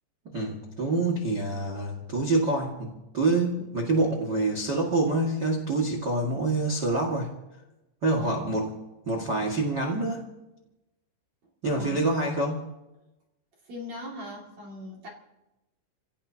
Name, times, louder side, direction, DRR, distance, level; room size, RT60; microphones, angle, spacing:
voice 1, 0.2-7.3 8.0-8.7 9.0-10.3 11.6-12.7, right 2 dB, 90° right, 0 dB, 0.9 m, -26 dB
voice 2, 8.2-8.6 11.7-12.1 13.7-15.1, left 1 dB, 40° right, -2 dB, 3.0 m, -40 dB
29.0 x 17.0 x 2.9 m, 0.97 s
omnidirectional pair, 5.7 m